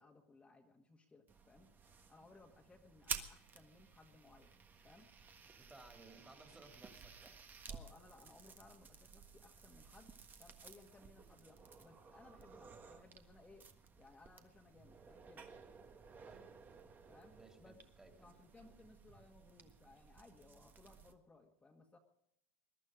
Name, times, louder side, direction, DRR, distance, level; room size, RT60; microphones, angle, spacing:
voice 1, 0.0-1.7 2.1-4.5 4.8-5.1 7.7-10.1 10.4-13.7 14.0-15.5 17.1-17.8 18.2-22.0, left 3 dB, 15° left, -1 dB, 1.8 m, -62 dB
sound 1, 1.3-21.1, right 5 dB, 25° right, 1.5 m, -54 dB
voice 2, 5.6-7.4 8.2-8.6 16.2-16.5 17.3-18.3, right 2 dB, 10° right, 4 dB, 2.7 m, -61 dB
22.0 x 12.0 x 5.1 m, 0.78 s
supercardioid pair, 125°, 8 cm